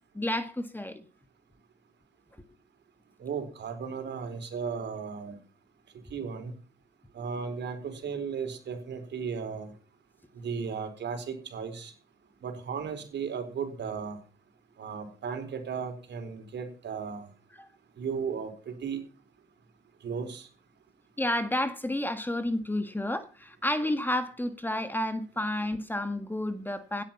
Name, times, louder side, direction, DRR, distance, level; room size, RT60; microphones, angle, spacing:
voice 1, 0.1-1.0 17.6-17.7 21.2-27.0, left 1 dB, 10° left, 1.7 m, -31 dB
voice 2, 3.2-5.4 6.1-6.5 7.1-9.7 10.3-11.9 12.4-14.2 14.8-17.3 18.0-19.0 20.0-20.5, right 6 dB, 60° right, 4.3 m, -35 dB
16.5 x 10.0 x 5.9 m
cardioid pair, 90°, 20 cm